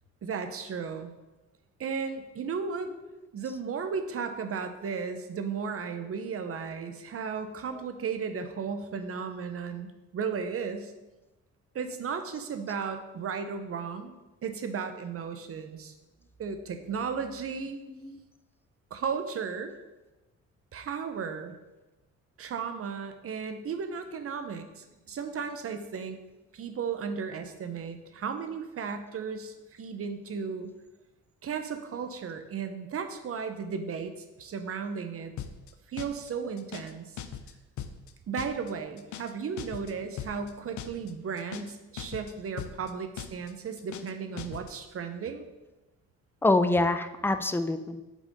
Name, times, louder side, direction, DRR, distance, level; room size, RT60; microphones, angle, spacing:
voice 1, 0.2-1.1 1.8-2.9 3.3-10.9 11.7-14.1 14.4-15.9 16.4-17.8 18.9-19.8 20.7-21.5 22.4-26.2 26.5-30.7 31.4-35.3 35.9-37.2 38.3-45.4, right 6 dB, 50° right, 8 dB, 0.8 m, -35 dB
voice 2, 17.9-18.2 46.4-48.0, left 2 dB, 10° left, 10 dB, 0.4 m, -26 dB
sound 1, 35.4-35.7 36.0-36.3 36.6-36.9 37.2-37.5 37.8-38.1 38.4-38.7 39.0-39.3 39.6-39.9 40.2-40.5 40.8-41.1 41.4-41.7 42.0-42.3 42.6-42.9 43.2-43.5 43.8-44.1 44.4-44.7, left 9 dB, 75° left, 0.6 m, -39 dB
6.0 x 4.1 x 5.3 m, 1.1 s
cardioid pair, 90°, 30 cm